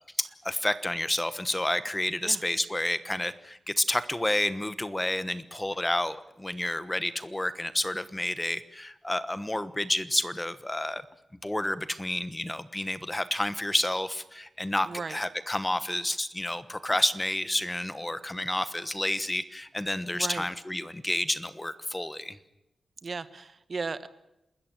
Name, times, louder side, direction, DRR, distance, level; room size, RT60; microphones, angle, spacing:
voice 1, 0.2-11.0 11.4-22.4, left 1 dB, 15° left, 14 dB, 1.2 m, -30 dB
voice 2, 14.8-15.2 20.1-20.5 23.0-24.1, right 4 dB, 50° right, 14 dB, 1.3 m, -35 dB
28.5 x 13.5 x 9.3 m, 0.91 s
wide cardioid pair, 100°, 0 cm